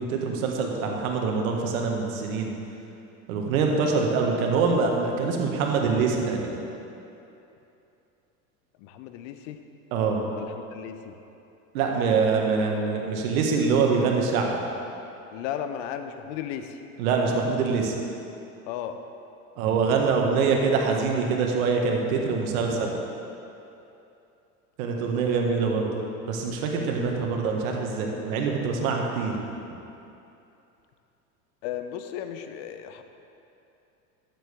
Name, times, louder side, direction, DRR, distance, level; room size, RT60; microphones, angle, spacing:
voice 1, 0.0-2.5 3.3-6.6 9.9-10.2 11.7-14.6 17.0-17.9 19.6-22.9 24.8-26.0 26.3-29.3, right 4 dB, 70° right, 1 dB, 1.6 m, -24 dB
voice 2, 8.8-9.6 10.4-11.2 15.3-16.8 18.7-19.0 31.6-33.0, left 9 dB, 60° left, 8 dB, 0.9 m, -35 dB
12.0 x 7.6 x 3.6 m, 2.8 s
hypercardioid pair, 90°, 43 cm